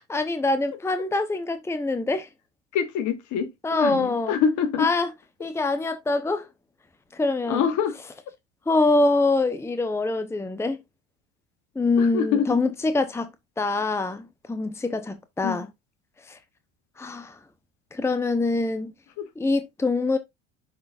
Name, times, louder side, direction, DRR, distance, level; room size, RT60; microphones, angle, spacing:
voice 1, 0.0-2.3 3.6-4.4 4.8-5.1 5.4-6.5 7.1-7.7 8.7-10.8 11.8-13.3 13.6-15.7 16.3-16.4 17.0-17.4 17.9-18.9 19.4-20.2, left 3 dB, 5° left, 0.8 m, -24 dB
voice 2, 2.7-4.9 7.4-8.0 12.0-12.6 15.4-15.6 19.2-19.3, left 7 dB, 50° left, 1.5 m, -25 dB
11.5 x 4.1 x 2.4 m
hypercardioid pair, 75°, 36 cm